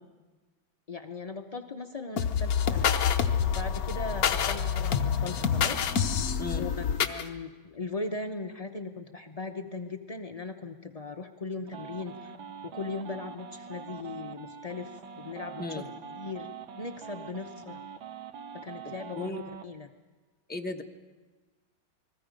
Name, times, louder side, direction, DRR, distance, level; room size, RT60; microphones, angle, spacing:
voice 1, 0.9-3.0 3.5-6.1 6.6-6.7 7.0-12.3 12.6-15.8 16.1-16.5 16.8-17.8 18.6-19.9, left 3 dB, 70° left, 4 dB, 0.3 m, -38 dB
sound 1, 2.2-7.2, left 7 dB, 55° left, 1.2 m, -27 dB
sound 2, 11.7-19.6, right 7 dB, 80° right, 1.8 m, -44 dB
voice 2, 20.5-20.8, left 2 dB, 5° left, 2 dB, 0.8 m, -35 dB
29.5 x 21.0 x 5.2 m, 1.3 s
omnidirectional pair, 2.1 m